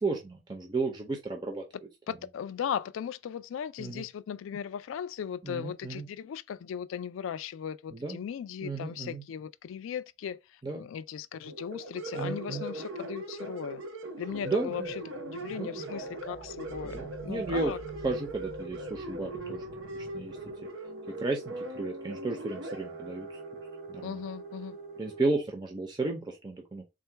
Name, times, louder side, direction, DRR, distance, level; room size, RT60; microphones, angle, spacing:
voice 1, 0.0-1.6 3.8-4.0 5.4-6.1 7.9-8.2 8.6-9.2 10.6-10.9 12.1-12.6 14.4-14.9 15.5-15.9 16.9-17.7 18.0-20.4 21.1-23.4 23.9-24.2 25.0-26.8, right 3 dB, 20° right, 0.5 m, -33 dB
voice 2, 2.1-13.8 14.2-14.9 15.3-17.8 24.0-24.8, left 8 dB, 85° left, 0.3 m, -37 dB
sound 1, 11.5-25.2, right 2 dB, 85° right, 0.7 m, -40 dB
sound 2, 14.3-20.6, right 3 dB, 65° right, 1.1 m, -48 dB
3.7 x 2.2 x 4.4 m
head